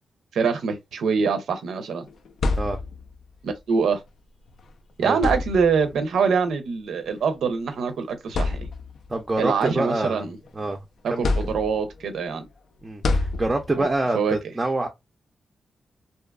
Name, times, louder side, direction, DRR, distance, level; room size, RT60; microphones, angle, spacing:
voice 1, 0.3-2.1 3.4-4.0 5.0-8.7 9.4-10.4 11.0-12.4 13.8-13.9 14.1-14.4, right 5 dB, 85° right, 0.5 m, -24 dB
sound 1, 2.1-3.2 4.5-4.6 5.1-6.0 7.1-7.2 7.8-7.9 8.3-9.1 9.6-10.7 11.2-12.0 13.0-13.9, left 3 dB, 65° left, 0.3 m, -27 dB
voice 2, 9.1-10.2 10.5-10.8 11.1-11.3 12.8-14.9, right 2 dB, 20° right, 0.4 m, -26 dB
2.6 x 2.3 x 2.2 m
wide cardioid pair, 115°, 0 cm